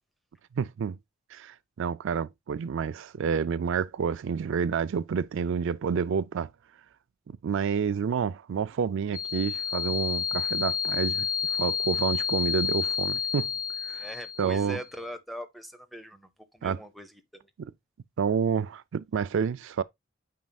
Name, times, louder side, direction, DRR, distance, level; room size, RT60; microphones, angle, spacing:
voice 1, 0.6-1.0 1.3-6.5 7.3-13.5 13.8-14.1 14.4-14.8 16.6-16.8 17.6-17.7 18.2-19.8, right 6 dB, 60° right, 0.4 m, -29 dB
sound 1, 9.1-14.8, left 7 dB, 80° left, 0.7 m, -30 dB
voice 2, 14.0-17.5, equal, ahead, 0.8 m, -41 dB
9.3 x 5.3 x 2.3 m
head